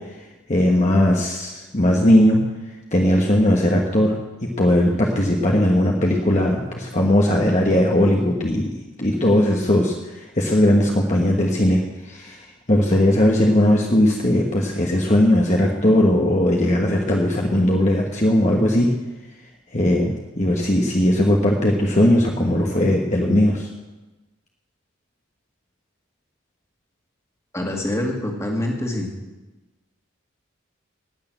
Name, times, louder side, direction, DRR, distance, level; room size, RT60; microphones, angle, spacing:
voice 1, 0.5-2.4 2.9-4.1 4.6-8.7 9.0-11.8 12.0-12.4 12.7-18.9 19.7-23.7, left 1 dB, 35° left, -1 dB, 1.3 m, -18 dB
voice 2, 27.5-29.1, left 1 dB, 15° left, 0 dB, 2.1 m, -25 dB
18.5 x 6.7 x 7.8 m, 1.1 s
head